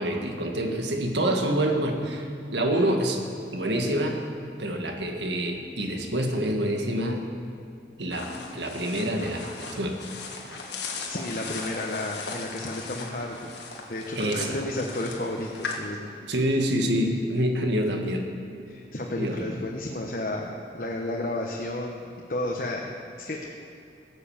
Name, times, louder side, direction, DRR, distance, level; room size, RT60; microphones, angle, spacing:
voice 1, 0.0-3.2 3.5-4.2 4.6-7.2 8.0-10.0 14.1-14.6 16.3-18.2 19.2-19.6, right 1 dB, 85° right, 3 dB, 1.7 m, -27 dB
sound 1, 8.1-15.8, left 4 dB, 75° left, 1.8 m, -38 dB
voice 2, 11.1-13.5 13.9-16.1 18.7-20.5 20.7-22.0 22.3-22.9 23.3-23.6, left 1 dB, 50° left, 0 dB, 1.1 m, -32 dB
17.0 x 8.1 x 7.2 m, 2.5 s
head